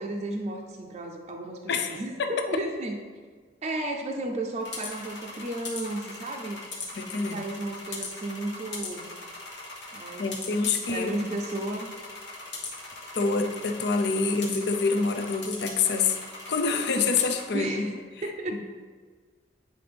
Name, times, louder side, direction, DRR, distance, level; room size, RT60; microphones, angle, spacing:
voice 1, 0.0-3.0 3.6-6.6 7.3-9.1 9.9-10.3 10.9-11.9 17.5-18.6, right 1 dB, 40° right, 1 dB, 0.5 m, -33 dB
voice 2, 1.7-2.5 7.0-7.4 10.2-11.2 13.1-16.2 16.5-17.9 18.5-18.6, left 4 dB, 65° left, 6 dB, 0.5 m, -26 dB
sound 1, 4.6-17.4, left 3 dB, 90° left, 1.5 m, -40 dB
9.4 x 3.9 x 3.4 m, 1.5 s
head